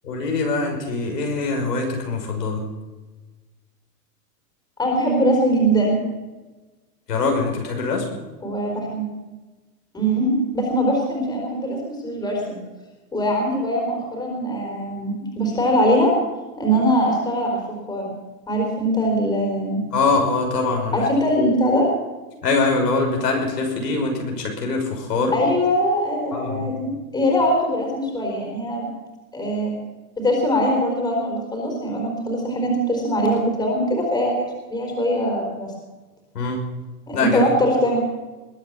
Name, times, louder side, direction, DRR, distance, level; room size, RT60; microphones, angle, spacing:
voice 1, 0.0-2.6 7.1-8.0 19.9-21.1 22.4-25.3 26.3-26.7 36.3-36.6 37.1-37.5, left 3 dB, 85° left, 1 dB, 6.0 m, -23 dB
voice 2, 4.8-6.0 8.4-9.0 9.9-12.6 13.1-16.1 16.6-17.6 17.9-18.1 18.5-19.8 20.9-21.9 25.3-28.9 29.3-29.7 30.2-35.7 37.1-38.0, equal, 10° left, -1 dB, 4.3 m, -22 dB
21.0 x 9.1 x 7.4 m, 1.2 s
hypercardioid pair, 155°, 47 cm